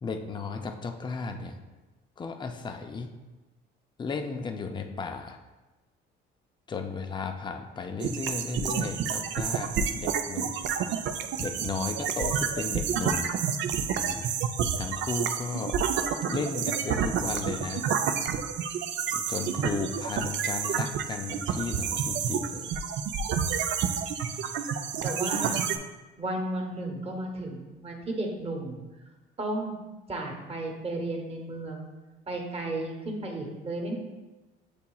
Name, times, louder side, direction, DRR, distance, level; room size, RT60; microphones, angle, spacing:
voice 1, 0.0-1.6 2.2-3.1 4.0-5.4 6.7-10.6 11.4-13.3 13.9-14.3 14.8-15.8 16.3-17.8 19.1-22.8, left 4 dB, 20° left, 6 dB, 0.4 m, -34 dB
sound 1, 8.0-25.8, right 7 dB, 60° right, 0.4 m, -29 dB
voice 2, 25.0-25.7 26.2-28.8 29.4-29.8 30.1-31.8 32.3-33.9, right 2 dB, 30° right, 1 dB, 1.0 m, -33 dB
8.1 x 2.8 x 2.3 m, 1.1 s
cardioid pair, 100°, 21 cm